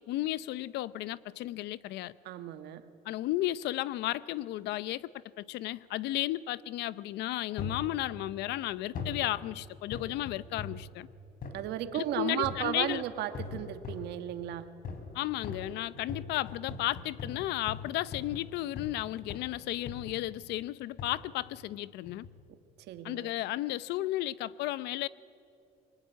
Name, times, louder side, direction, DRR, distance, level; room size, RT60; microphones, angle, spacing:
voice 1, 0.0-2.1 3.1-5.1 5.4-11.1 11.9-13.0 15.1-22.3 23.0-25.1, left 15 dB, 85° left, 0.6 m, -34 dB
voice 2, 2.2-2.8 11.5-14.7 22.9-23.3, right 12 dB, 80° right, 1.5 m, -35 dB
sound 1, 7.6-7.9 8.9-9.3 9.9-10.9 11.4-11.6 12.4-12.8 13.3-14.1 14.8-15.1 15.4-19.0 19.3-19.5 19.9-20.3 21.0-21.2 22.1-22.4 23.0-23.1, left 5 dB, 60° left, 4.2 m, -41 dB
25.5 x 23.0 x 9.3 m
cardioid pair, 110°, 17 cm